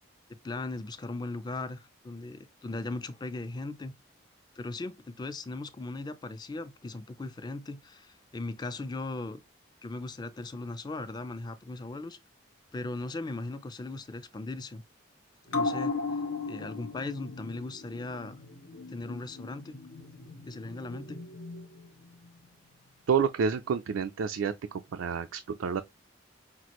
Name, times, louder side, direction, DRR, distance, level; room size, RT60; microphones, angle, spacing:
voice 1, 0.4-3.9 4.6-9.4 9.8-12.2 12.7-14.8 15.5-16.2 16.5-18.4 18.9-19.8 20.5-21.2, left 2 dB, 20° left, 0.4 m, -38 dB
sound 1, 15.5-22.4 22.7-22.8, left 3 dB, 90° left, 1.0 m, -37 dB
voice 2, 23.1-25.8, right 6 dB, 85° right, 0.4 m, -29 dB
5.9 x 2.4 x 3.0 m
head